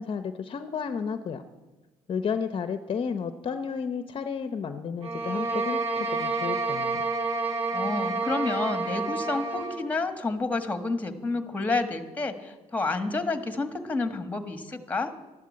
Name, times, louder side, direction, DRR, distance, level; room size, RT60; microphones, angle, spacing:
voice 1, 0.0-1.4 2.1-7.1, left 6 dB, 40° left, 9 dB, 0.7 m, -32 dB
sound 1, 5.0-9.9, right 3 dB, 45° right, 1.6 m, -29 dB
voice 2, 7.7-15.1, left 3 dB, 10° left, 8 dB, 1.4 m, -29 dB
12.5 x 11.5 x 8.6 m, 1.2 s
cardioid pair, 120°, 13 cm